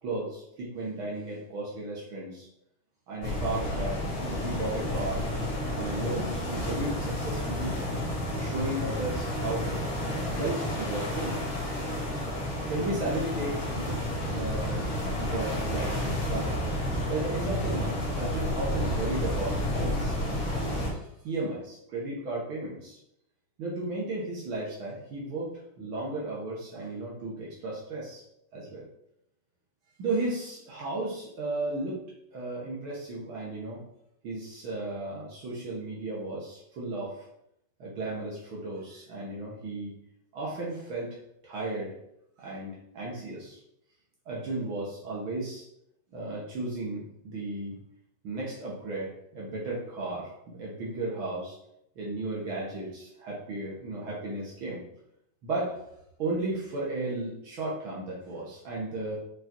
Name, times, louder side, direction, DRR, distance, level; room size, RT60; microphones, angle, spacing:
voice 1, 0.0-2.5 3.1-5.3 5.7-7.8 8.3-9.7 10.3-11.4 12.7-14.0 14.3-14.9 15.2-16.6 17.1-23.0 23.6-25.5 25.8-28.2 28.5-28.8 30.0-32.0 32.3-33.8 34.2-37.3 37.8-39.9 40.3-41.1 41.4-41.9 42.4-43.6 44.2-45.6 46.1-47.8 48.2-51.5 51.9-54.8 55.4-55.7 56.2-59.2, right 2 dB, 90° right, -5 dB, 1.1 m, -34 dB
sound 1, 3.2-20.9, left 1 dB, 30° left, 3.0 m, -31 dB
8.0 x 4.0 x 4.5 m, 0.76 s
omnidirectional pair, 4.9 m